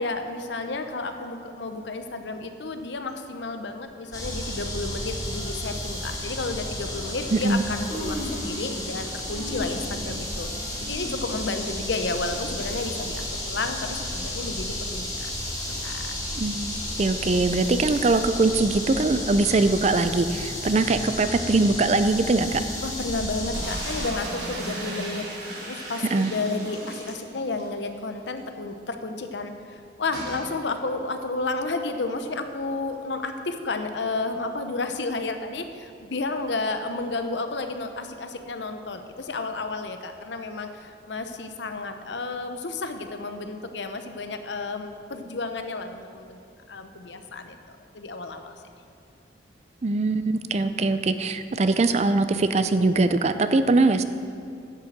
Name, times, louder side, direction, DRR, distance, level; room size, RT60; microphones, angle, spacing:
voice 1, 0.0-10.5 10.8-15.3 15.8-16.1 22.8-25.3 25.7-46.4 46.7-48.6, left 3 dB, 70° left, 7 dB, 0.8 m, -32 dB
Human voice, 4.0-4.2 5.3-5.4 6.0-6.2 7.2-7.3 7.6-9.0 9.2-12.8 13.2-13.3 14.1-14.2, left 1 dB, ahead, 1.9 m, -38 dB
sound 1, 4.1-24.1, left 1 dB, 20° left, 1.9 m, -33 dB
voice 2, 7.3-7.7 16.4-22.6 26.1-26.3 49.8-54.0, right 3 dB, 35° right, 11 dB, 0.4 m, -22 dB
sound 2, 23.5-27.7 28.0-28.1 28.4-28.5 30.1-30.5, right 1 dB, 60° right, 2.7 m, -36 dB
10.5 x 6.7 x 7.3 m, 2.4 s
head